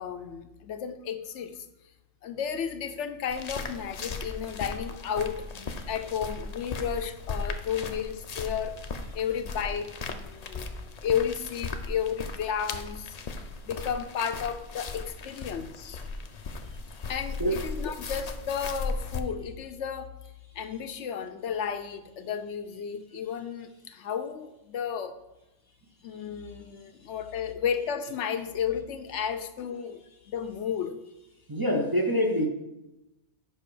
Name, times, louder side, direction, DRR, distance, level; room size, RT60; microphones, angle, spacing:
voice 1, 0.0-1.6 2.2-8.8 9.1-10.7 11.0-13.2 13.6-16.0 17.1-20.1 20.6-25.2 26.0-30.0 30.3-31.0, left 8 dB, 75° left, 9 dB, 0.9 m, -33 dB
sound 1, 3.3-19.2, left 3 dB, 45° left, 0.5 m, -37 dB
voice 2, 31.5-32.5, equal, 25° right, 1 dB, 0.6 m, -25 dB
7.2 x 5.7 x 4.8 m, 0.95 s
omnidirectional pair, 1.3 m